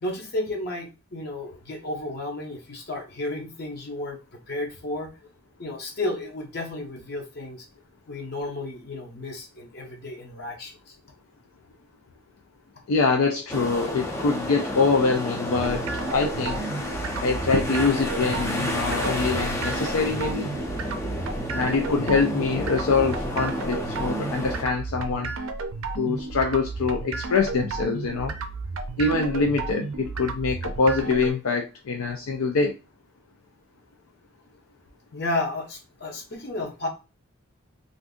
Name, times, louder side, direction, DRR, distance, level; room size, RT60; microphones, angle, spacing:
voice 1, 0.0-4.2 4.5-5.1 5.6-7.7 8.1-10.9 35.1-36.9, left 2 dB, 45° left, 1 dB, 0.7 m, -32 dB
voice 2, 12.9-15.8 16.1-16.6 17.2-20.5 21.5-25.3 26.0-28.4 29.0-32.8, left 4 dB, 80° left, 2 dB, 0.5 m, -24 dB
sound 1, 13.5-24.6, left 1 dB, 10° left, 0.4 m, -31 dB
sound 2, 15.5-31.3, right 4 dB, 75° right, 0.4 m, -33 dB
2.5 x 2.5 x 3.6 m, 0.29 s
head